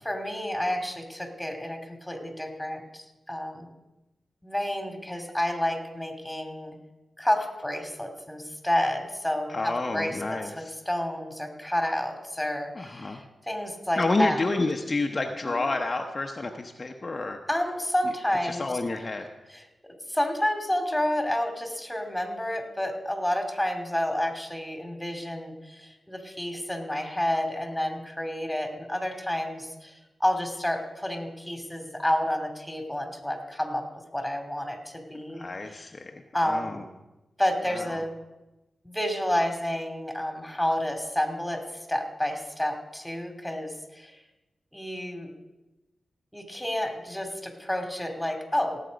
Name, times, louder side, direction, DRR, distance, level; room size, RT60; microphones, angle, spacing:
voice 1, 0.0-3.7 4.4-6.8 7.2-10.4 10.9-14.4 15.4-15.7 17.5-18.7 19.5-19.6 20.1-33.8 34.1-35.9 36.3-36.9 37.4-38.2 38.8-44.2 44.7-45.3 46.3-48.8, left 1 dB, 5° left, 5 dB, 2.4 m, -30 dB
voice 2, 9.5-10.7 12.7-13.2 14.0-17.4 18.4-19.3 35.3-36.8 37.7-38.0, left 2 dB, 45° left, 3 dB, 0.9 m, -30 dB
17.5 x 7.6 x 5.2 m, 1.0 s
cardioid pair, 50°, 0 cm